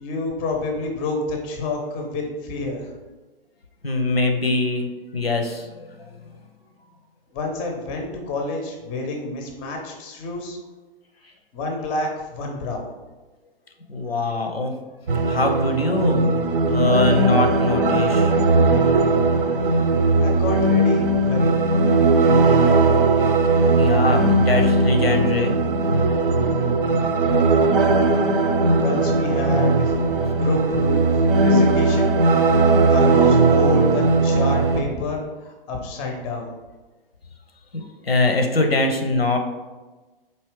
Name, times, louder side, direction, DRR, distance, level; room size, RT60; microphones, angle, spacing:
voice 1, 0.0-2.9 7.3-10.6 11.5-12.9 20.2-21.5 28.8-30.0 30.3-32.1 32.9-36.5, left 2 dB, 20° left, 2 dB, 0.5 m, -29 dB
voice 2, 3.8-4.9 5.1-6.1 13.9-14.7 15.3-18.3 23.8-25.5 37.7-39.4, left 2 dB, 90° left, 4 dB, 0.7 m, -22 dB
sound 1, 15.1-34.8, right 3 dB, 65° right, 0.6 m, -18 dB
4.4 x 2.8 x 3.1 m, 1.2 s
figure-of-eight pair, 115°, 29 cm